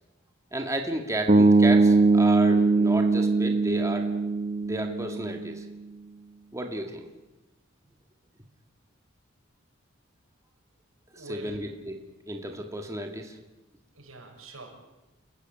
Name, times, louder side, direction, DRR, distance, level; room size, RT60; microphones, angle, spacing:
voice 1, 0.5-4.1 4.6-5.6 6.5-7.1 11.1-12.0 12.3-13.4, right 1 dB, 15° right, 3 dB, 2.0 m, -32 dB
sound 1, 1.3-5.4, right 3 dB, 40° right, 1.3 m, -21 dB
voice 2, 11.1-11.7 13.9-14.7, right 3 dB, 85° right, 1 dB, 7.1 m, -44 dB
30.0 x 15.0 x 9.0 m, 1.0 s
head